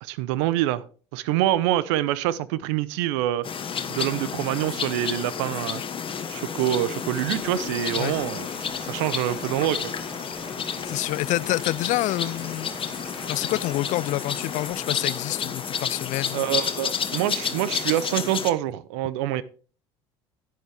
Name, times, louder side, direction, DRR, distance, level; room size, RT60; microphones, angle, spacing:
voice 1, 0.0-0.8 1.1-3.5 3.9-5.8 6.3-8.5 8.8-9.8 16.3-19.4, right 13 dB, 75° right, 0.7 m, -25 dB
sound 1, 3.4-18.5, left 7 dB, 35° left, 1.3 m, -31 dB
Water tap faucet, 7.2-13.8, equal, 5° right, 1.1 m, -47 dB
Stream / Liquid, 7.7-14.7, right 3 dB, 30° right, 2.1 m, -47 dB
voice 2, 10.8-12.7 13.3-16.5, left 17 dB, 55° left, 0.4 m, -27 dB
10.5 x 9.4 x 3.4 m
hypercardioid pair, 70°, 15 cm